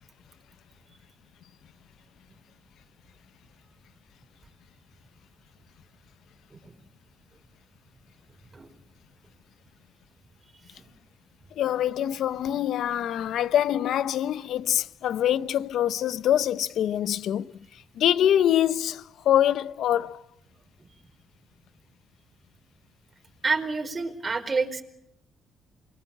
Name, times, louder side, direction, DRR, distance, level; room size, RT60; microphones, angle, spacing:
voice 1, 11.6-17.5 17.9-20.2, left 11 dB, 75° left, 1.0 m, -24 dB
voice 2, 23.4-24.8, right 4 dB, 30° right, 4.7 m, -28 dB
28.0 x 22.0 x 7.5 m
cardioid pair, 90°, 0 cm